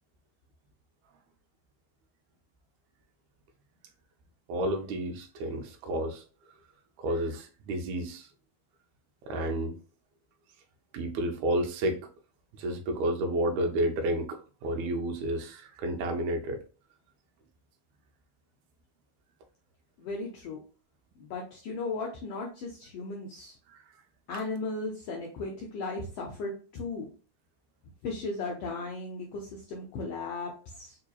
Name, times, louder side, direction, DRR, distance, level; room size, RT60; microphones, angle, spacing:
voice 1, 4.5-6.2 7.0-8.3 9.3-9.8 10.9-12.1 12.5-16.6 23.7-23.8, right 1 dB, 80° right, 2.0 m, -31 dB
voice 2, 20.0-20.6 21.2-23.6 24.3-27.1 28.0-31.0, left 3 dB, 80° left, 1.4 m, -36 dB
4.7 x 2.8 x 2.2 m
omnidirectional pair, 3.4 m